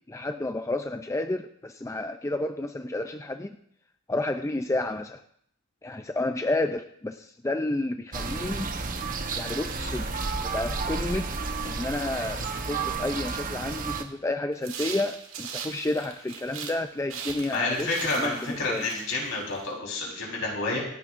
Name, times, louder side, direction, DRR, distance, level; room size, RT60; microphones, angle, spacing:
voice 1, 0.1-3.6 4.1-5.2 5.8-8.7 9.4-10.0 10.4-11.3 11.6-17.9 18.1-18.9, left 2 dB, 15° left, 6 dB, 0.4 m, -30 dB
sound 1, 8.1-14.0, right 4 dB, 40° right, 0.9 m, -31 dB
sound 2, 14.6-16.8 17.1-19.7, right 7 dB, 70° right, 1.7 m, -39 dB
voice 2, 17.5-20.8, left 3 dB, 65° left, -2 dB, 4.0 m, -29 dB
26.5 x 9.5 x 2.5 m, 0.70 s
head